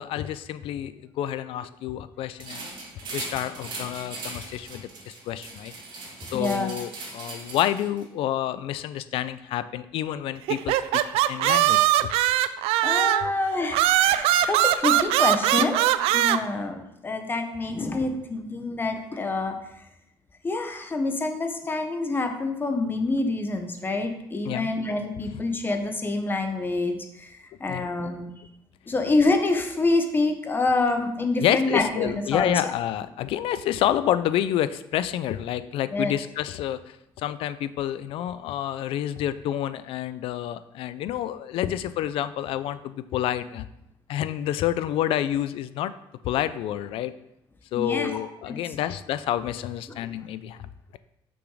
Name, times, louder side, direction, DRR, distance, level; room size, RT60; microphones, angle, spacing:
voice 1, 0.0-2.7 3.1-5.7 6.3-11.0 11.3-12.1 24.4-24.7 25.3-25.4 27.7-27.9 31.4-43.7 44.1-45.9 46.2-47.1 47.7-50.7, left 11 dB, 70° left, 14 dB, 0.5 m, -28 dB
sound 1, 2.4-8.0, right 3 dB, 55° right, 2.3 m, -39 dB
voice 2, 6.3-6.7 12.8-15.8 16.1-19.6 20.4-28.3 28.9-32.7 35.9-36.1 47.8-48.1 48.5-48.6, left 2 dB, 20° left, 5 dB, 1.1 m, -26 dB
sound 2, 10.5-13.3 13.7-16.4, right 13 dB, 90° right, 0.4 m, -21 dB
6.2 x 6.0 x 4.9 m, 0.82 s
cardioid pair, 120°, 10 cm